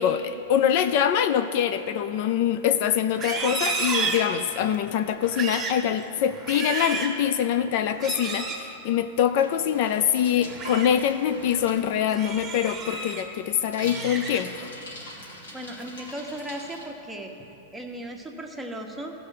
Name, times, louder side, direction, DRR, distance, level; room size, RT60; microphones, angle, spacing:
voice 1, 0.0-14.7, left 9 dB, 60° left, 10 dB, 0.4 m, -24 dB
Livestock farm animals working animals, 3.1-4.7 5.2-5.8 6.3-7.2 7.9-8.6 10.3-10.9 11.3-11.6 12.1-13.2 13.6-14.7 15.0-15.4 15.8-16.2, right 4 dB, 25° right, 1.6 m, -32 dB
sound 1, 3.4-3.7 3.9-7.7 8.1-9.0, right 9 dB, 70° right, 0.6 m, -46 dB
Bicycle, 9.3-16.8, left 1 dB, 85° left, 2.2 m, -43 dB
voice 2, 15.5-17.3 17.7-19.1, right 1 dB, 5° right, 0 dB, 1.2 m, -36 dB
15.0 x 5.3 x 5.7 m, 3.0 s
hypercardioid pair, 110°, 0 cm